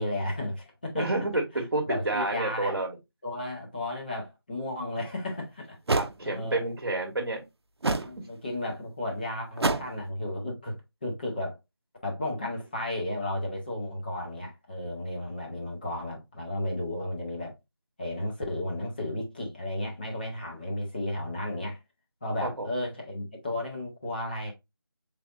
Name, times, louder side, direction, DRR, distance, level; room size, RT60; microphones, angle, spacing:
voice 1, 0.0-1.1 1.9-2.8 3.2-5.8 6.2-6.7 7.9-10.7 11.0-11.6 12.0-17.5 18.0-21.8 22.2-24.5, left 1 dB, 25° left, 0.7 m, -33 dB
voice 2, 0.9-2.9 6.0-7.4 22.4-22.7, right 2 dB, 60° right, 1.0 m, -29 dB
sound 1, 5.0-5.1 5.9-6.1 7.8-8.2 9.6-10.0, right 3 dB, 90° right, 0.5 m, -26 dB
4.1 x 3.4 x 2.4 m
figure-of-eight pair, 170°, 13 cm